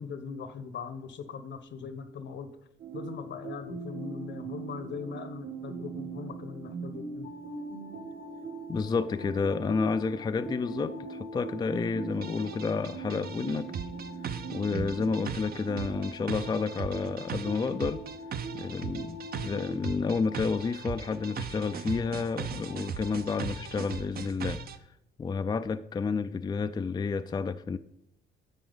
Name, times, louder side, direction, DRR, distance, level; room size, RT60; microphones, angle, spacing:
voice 1, 0.0-2.6 2.9-7.3, left 6 dB, 65° left, 1.0 m, -40 dB
sound 1, 2.8-19.8, right 4 dB, 75° right, 2.3 m, -41 dB
sound 2, 7.2-24.0, left 5 dB, 85° left, 1.7 m, -51 dB
voice 2, 8.7-13.7 14.5-18.0 18.5-24.6 25.2-27.8, left 4 dB, 20° left, 0.3 m, -30 dB
sound 3, 12.2-24.8, right 7 dB, 50° right, 0.6 m, -38 dB
10.5 x 7.2 x 3.9 m
cardioid pair, 90°, 20 cm